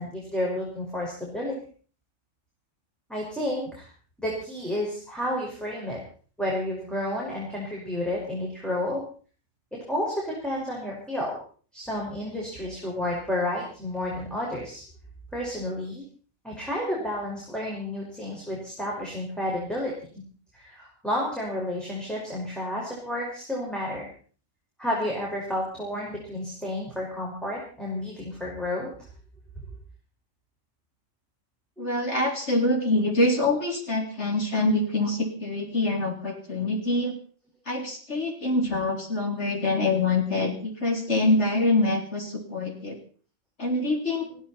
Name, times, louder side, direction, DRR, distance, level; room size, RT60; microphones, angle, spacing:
voice 1, 0.0-1.6 3.1-3.9 4.2-6.0 6.4-9.0 9.7-11.4 11.7-14.8 15.3-16.0 16.4-19.9 20.5-24.1 24.8-28.9 31.8-32.0 38.6-38.8 44.3-44.4, left 1 dB, ahead, -4 dB, 5.4 m, -31 dB
voice 2, 31.8-37.1 37.7-43.0 43.6-44.3, left 2 dB, 55° left, 1 dB, 3.9 m, -25 dB
21.0 x 15.0 x 4.3 m, 0.41 s
omnidirectional pair, 1.4 m